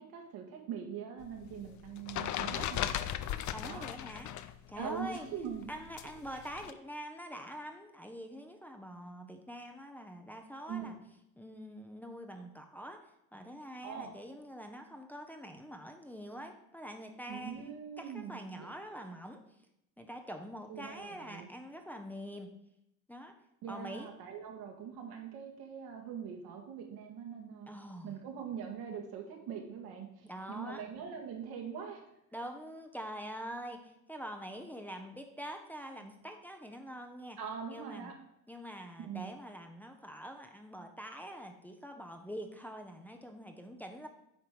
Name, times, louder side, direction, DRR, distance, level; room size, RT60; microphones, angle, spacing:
voice 1, 0.0-3.1 3.6-3.9 4.8-5.7 10.7-11.0 13.8-14.1 17.3-18.7 20.7-21.5 23.6-27.7 28.0-32.1 37.4-38.2 39.0-39.3, right 7 dB, 65° right, 2 dB, 2.0 m, -42 dB
sound 1, 1.2-4.6 4.8-6.7, left 11 dB, 45° left, 0.6 m, -37 dB
voice 2, 3.5-5.3 5.7-11.0 11.4-17.7 18.0-19.4 20.0-22.5 23.1-23.3 23.6-24.1 27.7-28.2 30.2-30.8 32.3-37.4 37.7-38.1 38.5-44.1, equal, 5° left, 3 dB, 0.9 m, -45 dB
8.7 x 4.6 x 5.1 m, 0.80 s
hypercardioid pair, 75°, 40 cm